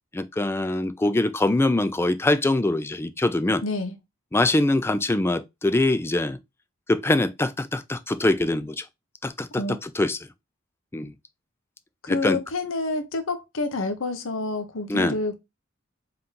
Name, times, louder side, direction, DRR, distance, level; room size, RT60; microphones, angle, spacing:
voice 1, 0.1-3.6 4.3-6.4 6.9-8.8 9.2-10.2 10.9-11.1 12.1-12.4 14.9-15.2, left 2 dB, 10° left, 0.3 m, -23 dB
voice 2, 3.6-4.0 9.6-9.8 12.0-15.4, left 3 dB, 75° left, 0.9 m, -28 dB
3.8 x 3.6 x 2.8 m
head